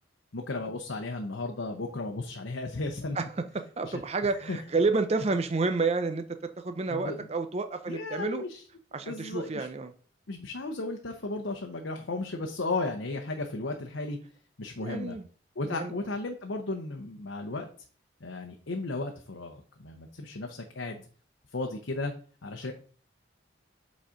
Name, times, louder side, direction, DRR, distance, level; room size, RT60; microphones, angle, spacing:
voice 1, 0.3-3.2 3.8-4.0 4.5-4.6 6.9-7.3 7.9-8.6 9.1-9.7 10.3-14.2 14.6-15.2 15.6-17.7 18.2-21.0 21.5-22.1 22.4-22.7, left 2 dB, 80° left, 0.9 m, -34 dB
voice 2, 3.8-6.2 6.6-8.4 8.9-9.9 14.8-15.2 15.7-15.9, right 3 dB, 30° right, 0.5 m, -29 dB
7.7 x 4.2 x 5.0 m
head